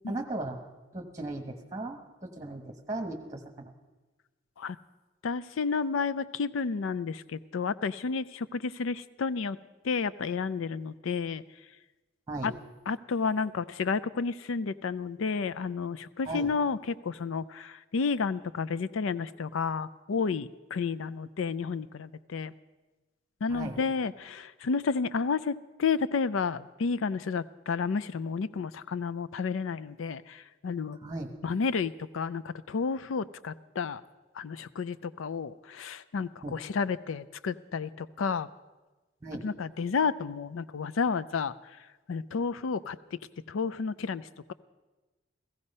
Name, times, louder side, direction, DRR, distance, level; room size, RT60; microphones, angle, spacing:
voice 1, 0.1-0.6 0.9-3.7 12.3-12.5 16.2-16.5 23.5-23.8 31.0-31.3 36.4-36.6 39.2-39.4, right 2 dB, 15° right, 4 dB, 1.1 m, -37 dB
voice 2, 5.2-9.6 9.8-11.4 12.4-12.5 12.9-22.5 23.4-30.4 30.6-31.0 31.4-34.0 34.4-38.5 39.4-41.5 42.1-43.0 43.5-44.2, left 5 dB, 80° left, 15 dB, 0.4 m, -31 dB
16.0 x 15.0 x 5.4 m, 1.2 s
head